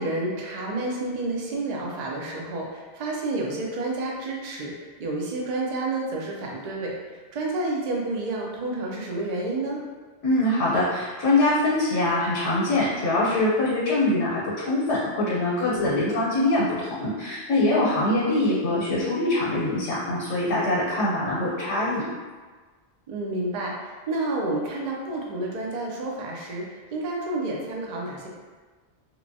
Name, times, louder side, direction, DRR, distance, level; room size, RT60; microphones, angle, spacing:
voice 1, 0.0-7.0 7.3-9.8 15.7-16.1 20.2-20.9 23.1-28.3, right 2 dB, 60° right, -2 dB, 0.4 m, -30 dB
voice 2, 10.2-22.0, left 2 dB, 80° left, -7 dB, 1.0 m, -23 dB
3.0 x 2.1 x 2.6 m, 1.4 s
omnidirectional pair, 1.2 m